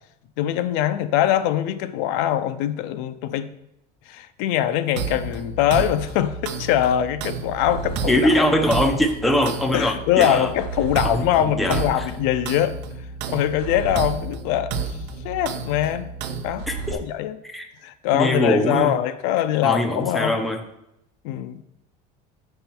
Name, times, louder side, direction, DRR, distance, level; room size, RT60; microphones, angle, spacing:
voice 1, 0.4-3.5 4.1-8.2 9.7-12.8 13.3-15.0 15.2-16.1 16.4-17.3 17.8-20.4 21.2-21.6, left 11 dB, 70° left, 0.6 m, -23 dB
sound 1, 5.0-16.9, right 4 dB, 60° right, 0.7 m, -31 dB
voice 2, 8.1-10.5 11.0-11.8 16.7-17.0 17.4-17.7 18.1-19.0 19.6-20.6, equal, ahead, 0.5 m, -22 dB
7.7 x 5.5 x 4.4 m
cardioid pair, 170°, 20 cm